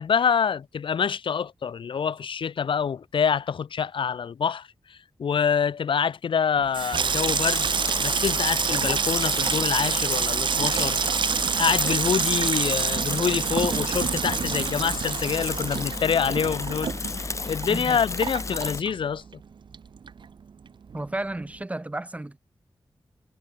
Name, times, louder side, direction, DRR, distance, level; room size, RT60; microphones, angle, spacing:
voice 1, 0.0-7.7 8.0-11.0 11.6-16.9 17.2-19.2, left 7 dB, 80° left, 0.9 m, -26 dB
Water tap faucet / Sink (filling or washing), 6.6-19.4 19.7-20.4 20.7-21.0, right 6 dB, 70° right, 1.1 m, -27 dB
Bicycle / Mechanisms, 7.0-18.8, left 4 dB, 35° left, 1.3 m, -33 dB
voice 2, 17.7-18.0 20.9-22.4, right 2 dB, 15° right, 2.5 m, -32 dB
wide cardioid pair, 145°, 8 cm